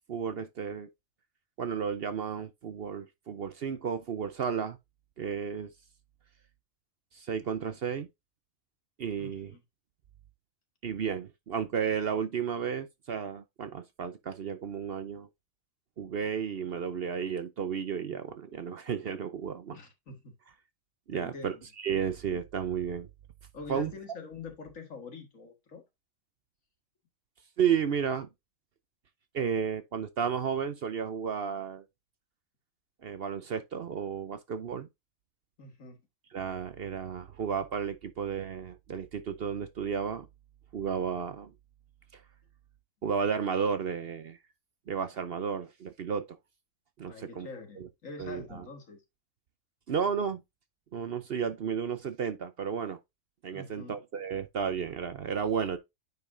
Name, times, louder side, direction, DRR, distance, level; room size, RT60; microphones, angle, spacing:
voice 1, 0.1-0.9 1.6-4.8 5.2-5.7 7.1-8.1 9.0-9.5 10.8-15.3 16.0-19.8 21.1-23.1 23.7-23.9 27.6-28.3 29.3-31.8 33.0-34.9 36.3-40.3 40.7-41.5 42.1-42.2 43.0-44.4 44.9-46.3 47.0-47.5 47.8-47.9 48.2-48.6 49.9-50.4 50.9-53.0 53.4-55.8, right 7 dB, 55° right, 0.8 m, -33 dB
voice 2, 9.2-9.6 19.7-20.3 21.1-21.6 23.5-25.8 35.6-36.0 47.1-49.0 53.5-54.0, left 4 dB, 75° left, 2.1 m, -45 dB
9.2 x 5.1 x 2.6 m
omnidirectional pair, 1.4 m